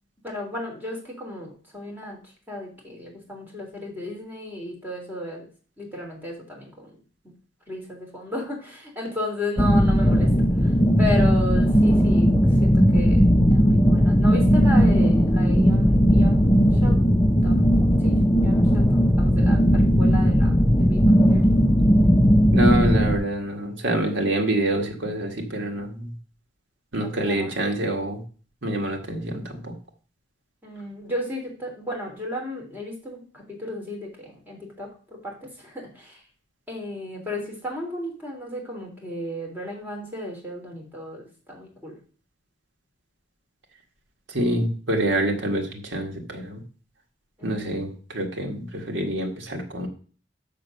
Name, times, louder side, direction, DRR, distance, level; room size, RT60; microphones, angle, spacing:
voice 1, 0.2-5.5 5.8-7.0 7.7-16.5 16.7-17.1 17.3-21.4 26.9-27.6 30.6-36.2 36.7-41.2 41.5-42.0 47.4-47.8, left 1 dB, 10° right, -1 dB, 3.3 m, -34 dB
sound 1, 9.6-23.1, equal, 15° left, 0.7 m, -17 dB
voice 2, 22.5-26.1 26.9-28.2 28.6-29.7 44.3-46.6 47.4-49.9, right 1 dB, 85° right, 2 dB, 1.9 m, -26 dB
6.7 x 6.6 x 6.4 m, 0.40 s
head